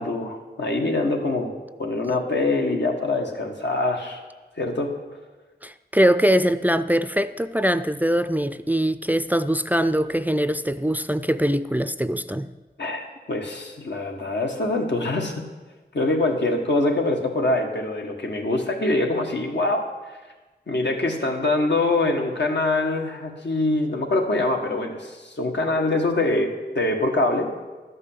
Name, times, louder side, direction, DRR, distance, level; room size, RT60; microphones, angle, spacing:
voice 1, 0.0-1.5 1.8-4.2 4.6-5.0 12.8-15.4 15.9-20.2 20.7-27.6, left 2 dB, 85° left, 1 dB, 1.6 m, -24 dB
voice 2, 5.6-12.5, equal, 10° right, 12 dB, 0.4 m, -22 dB
12.0 x 5.5 x 8.3 m, 1.2 s
wide cardioid pair, 65°, 18 cm